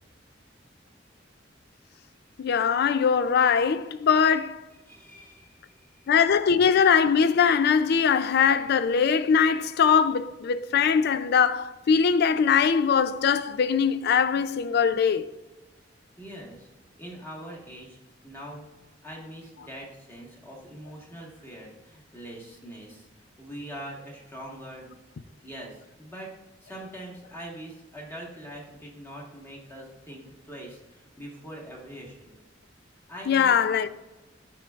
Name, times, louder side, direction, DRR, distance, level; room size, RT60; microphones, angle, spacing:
voice 1, 2.4-4.6 6.1-15.3 33.3-33.9, left 6 dB, 55° left, 0.4 m, -21 dB
voice 2, 4.8-6.1 16.2-16.7 17.0-18.0 18.2-18.7 19.0-23.1 23.4-25.0 25.4-26.3 26.6-32.3 33.1-33.6, right 1 dB, 10° left, 1.5 m, -43 dB
11.5 x 4.5 x 2.4 m
head